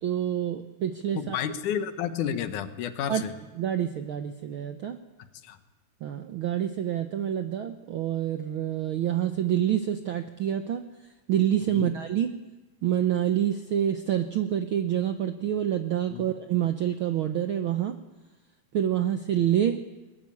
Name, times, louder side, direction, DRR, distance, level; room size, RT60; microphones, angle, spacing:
voice 1, 0.0-1.4 3.1-3.2 3.6-5.0 6.0-10.9 11.3-12.4 12.8-18.0 18.7-19.8, right 10 dB, 75° right, 8 dB, 1.2 m, -27 dB
voice 2, 1.2-3.3 5.4-5.6 11.7-11.9 16.1-16.3, left 9 dB, 90° left, 10 dB, 2.6 m, -31 dB
21.0 x 20.0 x 8.5 m, 1.1 s
omnidirectional pair, 3.4 m